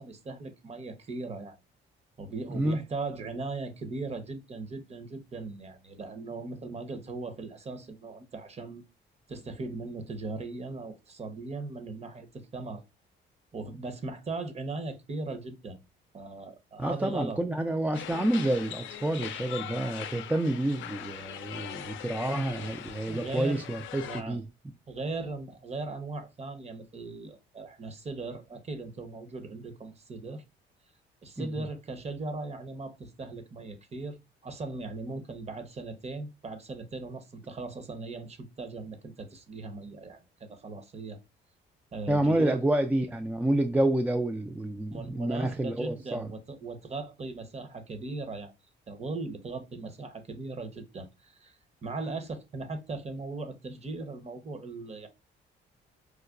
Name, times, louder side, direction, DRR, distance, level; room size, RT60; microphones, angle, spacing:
voice 1, 0.0-1.6 2.2-8.8 9.3-12.8 13.5-15.8 16.1-17.4 23.1-23.6 24.0-24.4 24.9-30.4 31.2-34.2 34.4-41.2 41.9-42.6 44.9-48.5 48.9-51.6 51.8-55.1, right 3 dB, 30° right, 0.8 m, -38 dB
voice 2, 16.8-24.4 31.4-31.5 42.1-46.3, right 1 dB, 10° right, 0.3 m, -28 dB
sound 1, 17.9-24.2, left 10 dB, 75° left, 0.5 m, -41 dB
4.7 x 2.2 x 2.4 m
cardioid pair, 90°, 20 cm